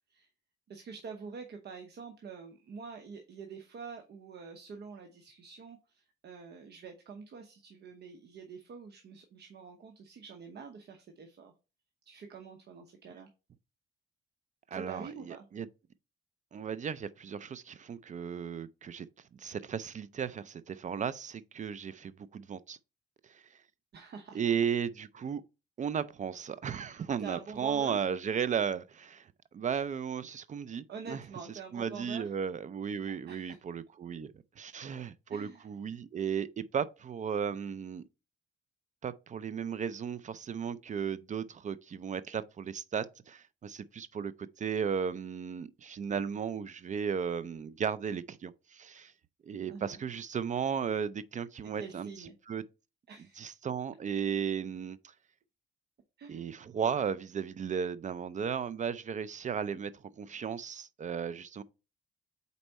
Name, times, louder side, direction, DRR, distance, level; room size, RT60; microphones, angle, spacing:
voice 1, 0.7-11.5 12.1-13.3 14.7-15.5 23.9-24.4 27.2-28.0 30.9-32.3 33.1-33.6 35.3-35.7 49.7-50.0 51.8-52.4 53.1-53.5 56.2-56.5, right 5 dB, 55° right, 0.9 m, -46 dB
voice 2, 14.7-15.7 16.5-19.1 19.4-22.8 23.3-23.4 24.3-25.4 25.8-29.3 29.5-31.2 31.7-38.0 39.0-49.1 49.4-52.1 52.5-52.6 53.4-55.0 56.3-59.9 60.2-61.6, right 7 dB, 40° right, 0.4 m, -35 dB
4.5 x 4.1 x 5.3 m
cardioid pair, 90°, 20 cm